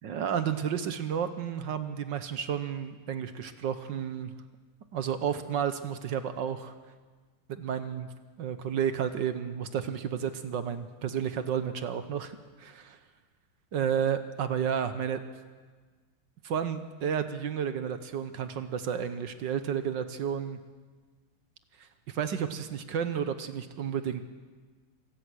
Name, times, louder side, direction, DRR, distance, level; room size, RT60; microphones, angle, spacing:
voice 1, 0.0-4.3 4.9-6.7 7.5-8.1 8.4-13.0 13.7-15.2 16.4-20.6 21.8-24.2, right 8 dB, 65° right, 10 dB, 1.5 m, -32 dB
26.0 x 16.5 x 6.3 m, 1.4 s
omnidirectional pair, 2.3 m